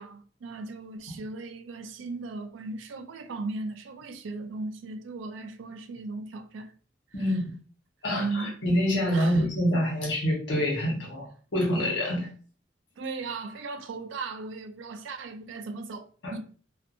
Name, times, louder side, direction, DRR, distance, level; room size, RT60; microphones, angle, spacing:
voice 1, 0.0-6.7 7.2-7.4 8.1-8.6 9.1-9.4 13.0-16.4, right 3 dB, 85° right, 0.4 m, -37 dB
voice 2, 7.1-7.5 8.0-12.3 16.2-16.3, equal, 75° left, 1.1 m, -26 dB
2.5 x 2.5 x 2.5 m
head